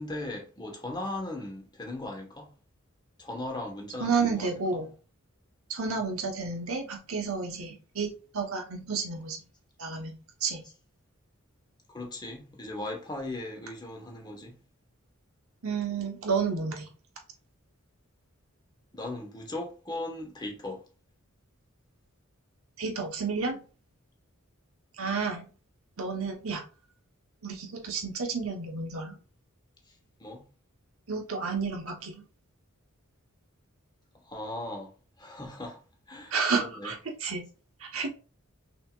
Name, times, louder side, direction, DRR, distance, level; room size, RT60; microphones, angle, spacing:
voice 1, 0.0-2.5 3.2-4.8 11.9-14.6 18.9-20.8 30.2-30.4 34.2-34.9 35.2-35.8 36.1-36.9, left 2 dB, 20° left, 1.2 m, -38 dB
voice 2, 4.0-4.9 5.7-9.4 9.8-10.1 10.4-10.6 15.6-16.9 22.8-23.6 25.0-25.5 26.0-26.6 27.4-29.1 31.1-32.2 36.3-37.4 37.8-38.1, right 5 dB, 75° right, 1.1 m, -31 dB
5.9 x 2.9 x 2.4 m
head